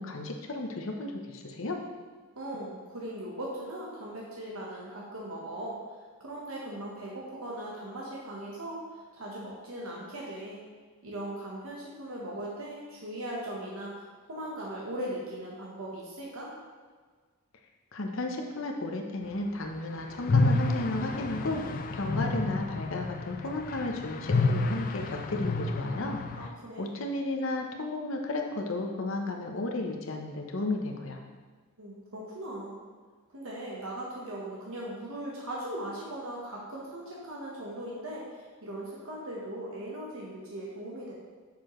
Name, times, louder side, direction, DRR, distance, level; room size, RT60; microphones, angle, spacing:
voice 1, 0.0-1.8 17.9-21.6 21.9-26.2 26.8-31.2, left 2 dB, 60° left, 2 dB, 0.8 m, -33 dB
voice 2, 2.3-5.8 6.2-10.6 11.0-16.5 26.3-26.9 31.8-32.8 33.3-41.1, right 1 dB, 70° right, -4 dB, 1.2 m, -39 dB
sound 1, 20.2-26.5, left 3 dB, 40° left, 0.3 m, -29 dB
6.7 x 6.7 x 3.1 m, 1.5 s
head